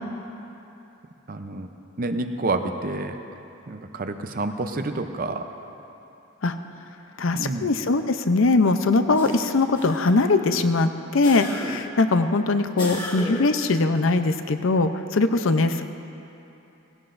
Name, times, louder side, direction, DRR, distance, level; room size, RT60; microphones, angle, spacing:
voice 1, 1.3-1.7 2.0-3.2 3.7-5.5 7.3-7.7, right 2 dB, 45° right, 7 dB, 0.6 m, -28 dB
voice 2, 7.2-15.8, left 3 dB, 70° left, 9 dB, 0.6 m, -21 dB
sound 1, 9.1-10.4 11.2-12.0 12.8-13.6, left 1 dB, 25° left, 1.8 m, -35 dB
18.0 x 16.5 x 2.6 m, 2.9 s
head